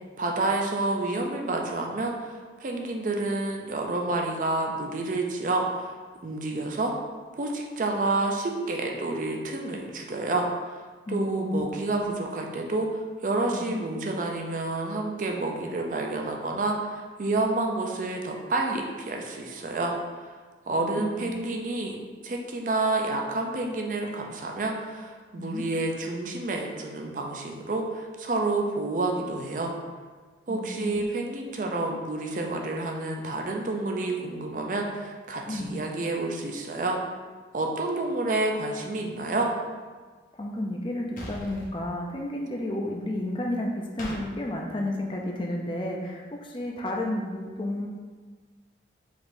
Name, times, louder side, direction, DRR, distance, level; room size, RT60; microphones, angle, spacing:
voice 1, 0.2-5.9 6.2-6.9 7.3-10.8 11.1-19.9 20.2-20.3 20.7-22.0 22.2-29.7 30.5-37.0 37.5-39.5, right 2 dB, 45° right, 1 dB, 0.4 m, -29 dB
voice 2, 11.1-11.7 11.9-12.1 13.5-13.8 20.7-21.3 25.4-25.7 30.5-31.0 35.5-35.8 40.4-47.9, left 1 dB, 30° left, 0 dB, 0.4 m, -32 dB
sound 1, 41.2-41.7 44.0-44.2, left 1 dB, 50° left, 0.9 m, -38 dB
4.9 x 3.7 x 2.6 m, 1.5 s
head